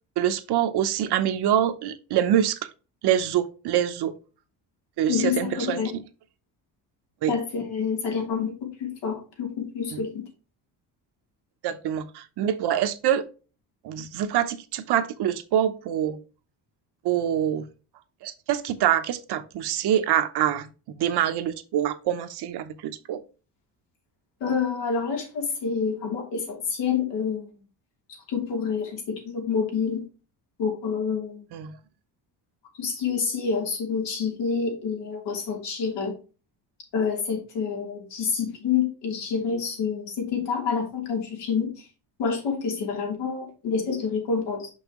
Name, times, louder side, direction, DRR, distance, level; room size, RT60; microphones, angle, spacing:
voice 1, 0.2-2.6 3.0-4.1 5.0-6.0 7.2-7.3 9.9-10.0 11.6-13.2 13.8-16.2 17.0-17.7 18.2-20.7 21.0-23.2 31.5-31.8, right 10 dB, 65° right, 9 dB, 0.9 m, -25 dB
voice 2, 5.1-5.9 7.3-10.3 24.4-27.6 28.3-30.1 30.6-31.4 32.8-36.2 36.9-41.8 42.2-44.7, left 6 dB, 80° left, 1 dB, 2.9 m, -28 dB
6.1 x 5.6 x 3.0 m, 0.33 s
cardioid pair, 145°, 42 cm